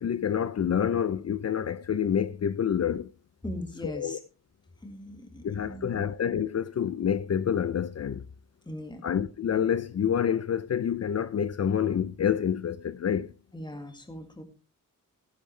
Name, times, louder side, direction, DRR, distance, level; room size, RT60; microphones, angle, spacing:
voice 1, 0.0-3.1 3.8-4.2 5.4-8.2 9.0-13.3, left 8 dB, 50° left, 0.5 m, -28 dB
voice 2, 3.4-4.2 4.8-6.1 8.7-9.1 13.5-14.4, left 1 dB, 15° left, 2.0 m, -39 dB
14.5 x 10.5 x 3.3 m
wide cardioid pair, 160°, 33 cm